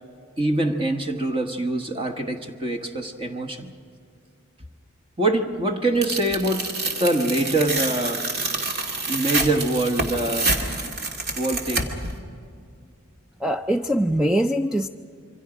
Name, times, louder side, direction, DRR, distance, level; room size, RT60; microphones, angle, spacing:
voice 1, 0.4-3.7 5.2-6.7 7.0-8.3 9.1-10.6 11.4-11.9, right 2 dB, 25° right, 5 dB, 1.2 m, -24 dB
Tearing, 6.0-12.1, right 2 dB, 50° right, 2.4 m, -27 dB
voice 2, 13.4-14.9, equal, 5° right, 5 dB, 0.4 m, -22 dB
27.5 x 24.5 x 5.0 m, 2.3 s
head